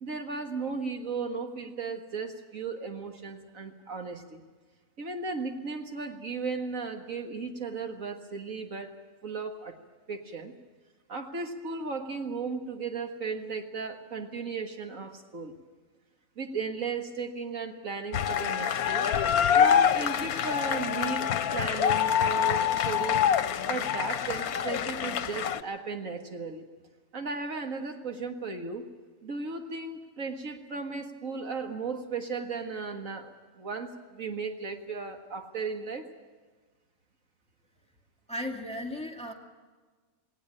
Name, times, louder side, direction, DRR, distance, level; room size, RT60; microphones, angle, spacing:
voice 1, 0.0-4.4 5.0-9.0 9.2-9.8 10.1-10.5 11.1-15.5 16.4-19.1 19.5-23.3 23.7-26.7 27.1-28.9 29.2-36.1, right 4 dB, 65° right, 5 dB, 2.0 m, -35 dB
sound 1, 18.1-25.6, left 8 dB, 90° left, 1.3 m, -26 dB
voice 2, 38.3-39.3, left 1 dB, 5° left, 1 dB, 2.4 m, -35 dB
19.0 x 18.5 x 8.7 m, 1.4 s
omnidirectional pair, 1.5 m